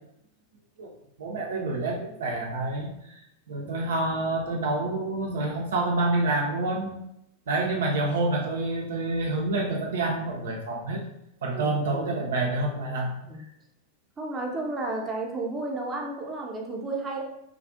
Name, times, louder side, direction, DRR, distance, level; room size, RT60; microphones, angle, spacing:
voice 1, 1.2-3.1 3.5-7.0 7.5-11.0 11.4-13.2, right 2 dB, 60° right, 0 dB, 0.4 m, -28 dB
voice 2, 11.5-12.2 13.2-13.4 14.2-17.2, right 2 dB, 15° right, -1 dB, 0.6 m, -32 dB
3.1 x 2.4 x 2.4 m, 0.78 s
figure-of-eight pair, 90°, 0 cm